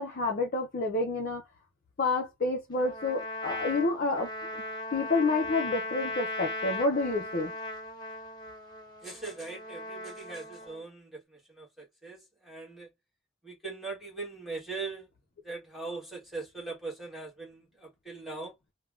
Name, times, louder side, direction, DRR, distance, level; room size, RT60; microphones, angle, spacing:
voice 1, 0.0-1.4 2.0-4.3 4.9-7.5, left 3 dB, 45° left, 0.5 m, -29 dB
Trumpet, 2.7-10.8, left 2 dB, 20° left, 0.8 m, -38 dB
voice 2, 9.0-12.2 12.4-12.9 13.4-15.1 15.4-18.5, right 3 dB, ahead, 1.4 m, -40 dB
3.3 x 2.2 x 2.4 m
head